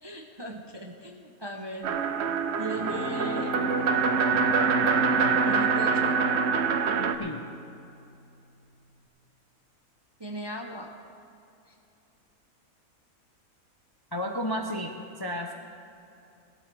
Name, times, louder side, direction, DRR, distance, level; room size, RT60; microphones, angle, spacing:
voice 1, 0.0-2.1 2.6-3.6 5.1-6.2 10.2-10.9 11.7-11.8, right 2 dB, 25° right, 2 dB, 0.6 m, -37 dB
sound 1, 1.8-7.2, right 6 dB, 60° right, 0.8 m, -25 dB
Bowed string instrument, 2.5-8.3, left 1 dB, 70° left, 1.1 m, -33 dB
voice 2, 14.1-15.5, equal, 25° left, 2 dB, 0.5 m, -32 dB
18.5 x 13.0 x 3.4 m, 2.7 s
omnidirectional pair, 1.5 m